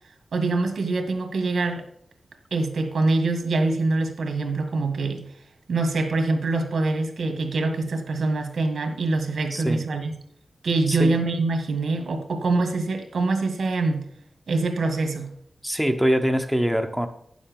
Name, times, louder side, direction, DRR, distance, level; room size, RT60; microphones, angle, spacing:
voice 1, 0.3-1.8 2.5-5.2 5.7-10.1 10.6-14.1 14.5-15.3, right 3 dB, 85° right, 6 dB, 1.8 m, -24 dB
voice 2, 9.5-9.8 10.9-11.2 15.6-17.1, equal, ahead, 4 dB, 0.8 m, -23 dB
10.0 x 7.4 x 5.3 m, 0.69 s
wide cardioid pair, 170°, 0 cm